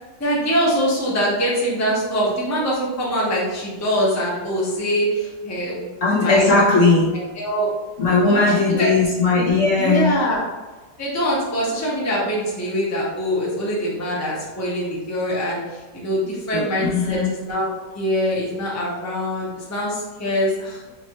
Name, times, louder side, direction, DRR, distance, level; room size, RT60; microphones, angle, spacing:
voice 1, 0.2-5.9 6.2-6.5 7.3-7.7 8.2-8.9 9.8-10.4 11.0-20.9, equal, 10° left, -6 dB, 0.8 m, -23 dB
voice 2, 6.0-7.1 8.0-10.2 16.5-16.6 16.9-17.3, left 3 dB, 55° left, -7 dB, 1.1 m, -17 dB
5.1 x 2.7 x 3.0 m, 1.2 s
omnidirectional pair, 1.9 m